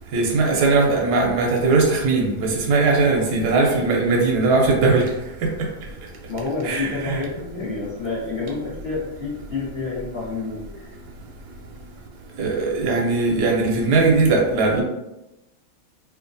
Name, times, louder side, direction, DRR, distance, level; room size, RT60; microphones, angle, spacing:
voice 1, 0.1-5.1 6.6-7.2 12.4-14.8, right 3 dB, 60° right, -1 dB, 1.1 m, -19 dB
voice 2, 6.3-10.9, left 3 dB, 35° left, -11 dB, 1.0 m, -29 dB
3.4 x 2.8 x 2.6 m, 0.95 s
omnidirectional pair, 2.3 m